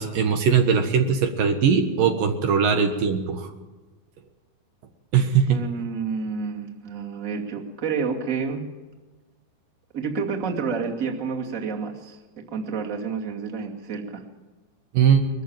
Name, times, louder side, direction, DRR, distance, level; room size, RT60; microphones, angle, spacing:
voice 1, 0.0-3.5 5.1-5.6 14.9-15.3, right 6 dB, 70° right, 5 dB, 3.0 m, -20 dB
voice 2, 5.5-8.7 9.9-12.2 12.5-14.2, right 5 dB, 25° right, 1 dB, 2.4 m, -29 dB
22.0 x 15.0 x 8.9 m, 1.2 s
omnidirectional pair, 4.3 m